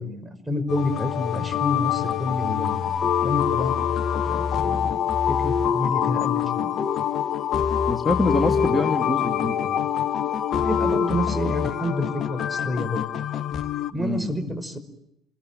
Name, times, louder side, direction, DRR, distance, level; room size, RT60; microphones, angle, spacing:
voice 1, 0.0-2.8 3.2-3.8 4.3-5.0 5.3-6.7 8.6-8.8 10.5-13.0 13.9-14.8, left 1 dB, 10° right, 8 dB, 5.2 m, -28 dB
sound 1, 0.7-13.9, left 8 dB, 45° left, 1.0 m, -25 dB
voice 2, 7.9-9.8 13.9-14.3, left 3 dB, 15° left, 3 dB, 2.8 m, -25 dB
28.0 x 21.5 x 9.3 m, 0.80 s
figure-of-eight pair, 55°, 0 cm